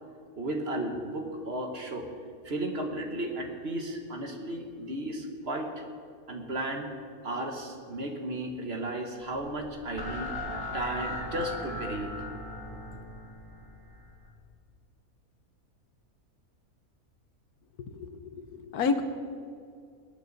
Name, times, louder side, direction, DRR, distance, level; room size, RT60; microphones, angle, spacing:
voice 1, 0.4-2.1 2.4-5.8 6.3-6.9 7.2-12.1, right 1 dB, 45° right, 3 dB, 1.4 m, -34 dB
sound 1, 9.2-14.3, left 1 dB, 15° left, 1.9 m, -39 dB
voice 2, 17.8-19.0, left 5 dB, 85° left, 8 dB, 1.5 m, -31 dB
20.0 x 9.9 x 4.0 m, 2.3 s
omnidirectional pair, 1.6 m